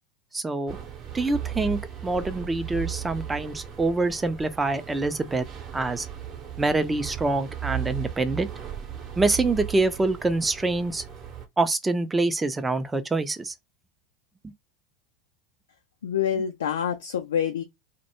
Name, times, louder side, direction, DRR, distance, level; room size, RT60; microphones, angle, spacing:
voice 1, 0.3-0.8 1.1-5.5 5.7-6.1 6.6-8.5 9.2-11.0 11.6-13.5 14.4-14.5, right 2 dB, 15° right, 0.4 m, -25 dB
sound 1, 0.7-11.5, right 10 dB, 40° right, 0.8 m, -36 dB
voice 2, 16.0-17.6, left 8 dB, 85° left, 0.4 m, -26 dB
2.1 x 2.0 x 2.9 m
hypercardioid pair, 90°, 0 cm